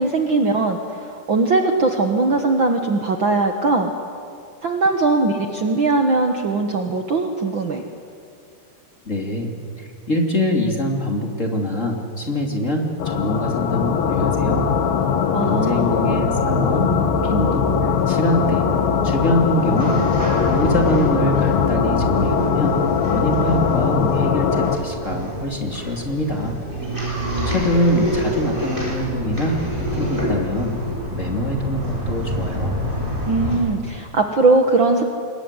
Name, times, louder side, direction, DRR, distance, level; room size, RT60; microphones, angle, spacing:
voice 1, 0.0-3.9 4.6-7.8 15.3-15.9 33.3-35.0, right 3 dB, 85° right, 5 dB, 1.0 m, -20 dB
voice 2, 9.0-14.7 15.4-16.9 17.2-18.6 19.0-20.0 20.4-22.8 23.0-26.6 27.0-29.6 29.9-30.7 31.1-32.8, left 1 dB, 20° left, 2 dB, 2.6 m, -24 dB
sound 1, 13.0-24.8, left 6 dB, 70° left, 3.4 m, -20 dB
sound 2, 17.4-33.5, equal, 10° right, 8.0 m, -27 dB
27.0 x 22.0 x 9.9 m, 2.4 s
omnidirectional pair, 4.6 m